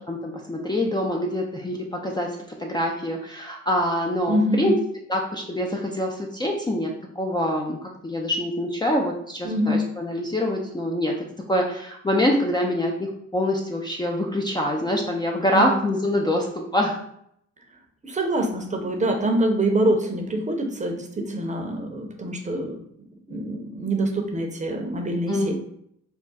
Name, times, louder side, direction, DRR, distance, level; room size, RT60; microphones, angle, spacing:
voice 1, 0.1-4.7 5.1-17.0 25.3-25.5, left 1 dB, 15° left, 0 dB, 0.4 m, -25 dB
voice 2, 4.3-4.7 9.4-9.8 15.5-15.7 18.0-22.8 23.3-25.5, right 1 dB, 25° right, 3 dB, 0.7 m, -25 dB
3.5 x 2.2 x 4.0 m, 0.71 s
cardioid pair, 90°, 30 cm